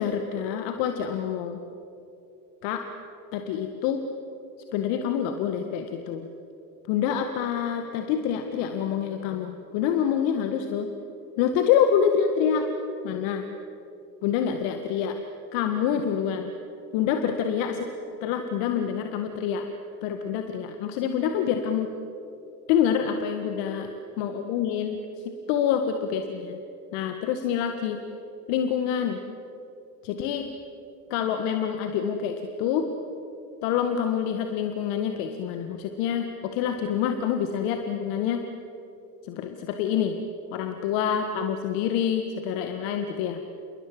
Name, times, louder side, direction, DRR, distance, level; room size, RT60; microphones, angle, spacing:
voice 1, 0.0-1.6 2.6-2.8 3.3-4.0 4.7-6.3 6.9-10.9 11.4-12.7 13.0-13.5 14.2-15.2 15.5-16.5 16.9-17.9 18.2-19.6 20.0-21.9 22.7-23.9 24.2-25.0 25.5-26.6 26.9-28.0 28.5-29.2 30.0-30.6 31.1-32.9 33.6-38.4 39.2-40.2 40.5-43.4, left 8 dB, 60° left, 6 dB, 1.9 m, -26 dB
28.5 x 22.0 x 7.7 m, 2.9 s
hypercardioid pair, 85°, 48 cm